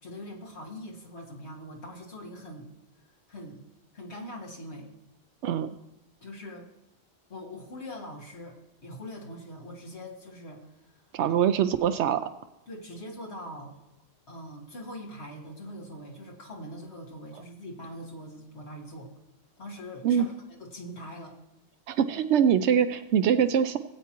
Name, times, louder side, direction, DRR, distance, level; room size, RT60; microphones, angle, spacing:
voice 1, 0.0-2.7 3.3-3.6 3.9-4.9 6.2-6.7 7.3-10.7 11.3-11.4 12.7-13.8 14.3-19.1 19.6-20.3 20.6-21.4, equal, 75° left, -1 dB, 1.9 m, -42 dB
voice 2, 11.1-12.3 20.0-20.3 21.9-23.8, right 8 dB, 90° right, 9 dB, 0.9 m, -23 dB
16.5 x 8.4 x 3.0 m, 0.94 s
omnidirectional pair, 1.1 m